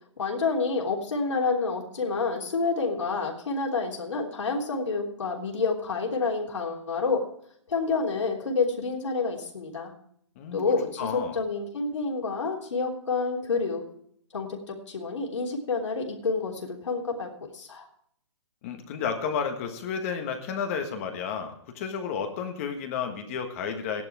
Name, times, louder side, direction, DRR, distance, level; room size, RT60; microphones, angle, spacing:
voice 1, 0.2-7.2 7.7-9.9 10.5-13.8 14.3-17.9, left 4 dB, 85° left, -1 dB, 3.4 m, -28 dB
voice 2, 10.3-11.4 18.6-24.0, left 6 dB, 30° left, 5 dB, 1.5 m, -32 dB
13.5 x 11.0 x 4.7 m, 0.67 s
hypercardioid pair, 165°, 15 cm